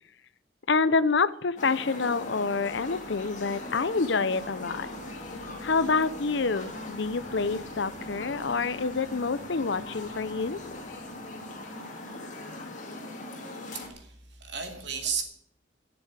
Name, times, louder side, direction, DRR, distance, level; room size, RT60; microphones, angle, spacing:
voice 1, 0.7-4.9 5.6-10.6, left 4 dB, 60° left, 15 dB, 0.6 m, -27 dB
sound 1, 1.6-13.9, left 2 dB, 40° left, 2.2 m, -40 dB
sound 2, 1.6-12.1, equal, 30° right, 2.0 m, -51 dB
voice 2, 13.7-15.2, right 6 dB, 60° right, 4 dB, 2.4 m, -34 dB
11.5 x 7.0 x 9.5 m, 0.68 s
head